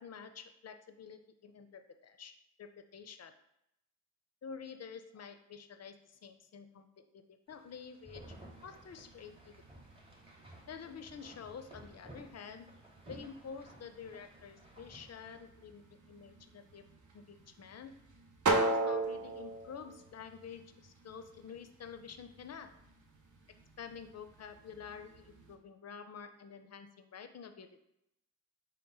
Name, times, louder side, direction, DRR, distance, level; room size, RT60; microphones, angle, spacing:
voice 1, 0.0-2.3 2.6-3.3 4.4-8.3 8.6-9.5 10.7-12.7 13.1-15.8 16.1-16.8 17.1-17.9 18.5-22.7 23.8-27.8, left 6 dB, 50° left, 8 dB, 0.4 m, -49 dB
sound 1, 7.5-15.4, right 1 dB, 15° right, 1.0 m, -56 dB
sound 2, 8.2-25.6, right 2 dB, 60° right, 0.6 m, -41 dB
3.8 x 2.1 x 3.9 m, 0.84 s
cardioid pair, 45°, 33 cm